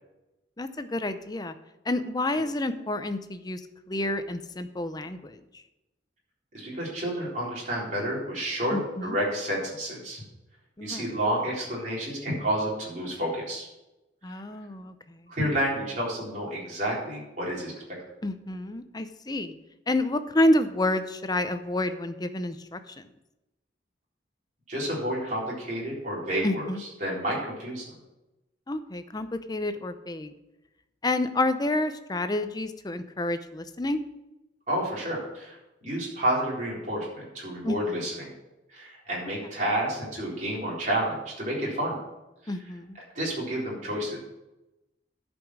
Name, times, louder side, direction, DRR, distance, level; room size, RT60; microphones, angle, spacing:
voice 1, 0.6-1.5 1.9-3.6 3.9-5.4 8.7-9.2 10.8-11.1 14.2-15.2 18.2-19.5 19.9-23.1 26.4-26.8 28.7-30.3 31.0-34.0 37.6-38.0 42.5-43.0, left 1 dB, 20° left, 10 dB, 0.6 m, -29 dB
voice 2, 6.5-10.2 10.8-13.7 14.3-14.4 15.3-17.7 24.7-27.8 34.7-35.6 35.8-38.3 38.7-42.0 42.4-42.5 43.1-44.2, right 1 dB, 45° right, -5 dB, 4.0 m, -30 dB
11.0 x 5.3 x 6.1 m, 0.96 s
head